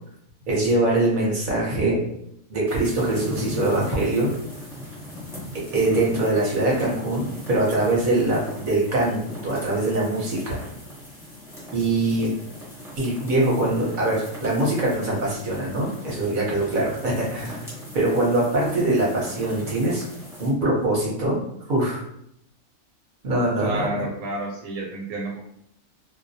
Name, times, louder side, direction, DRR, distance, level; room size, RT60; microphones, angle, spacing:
voice 1, 0.5-2.0 2.5-4.3 5.7-10.6 11.7-12.3 13.0-17.6 17.9-20.0 20.4-21.4 21.7-22.0 23.2-23.9, right 2 dB, 45° right, -4 dB, 0.8 m, -23 dB
sound 1, 2.7-20.5, left 1 dB, ahead, 0.6 m, -39 dB
voice 2, 23.6-25.4, right 2 dB, 75° right, -2 dB, 0.9 m, -30 dB
2.1 x 2.1 x 2.7 m, 0.74 s
omnidirectional pair, 1.4 m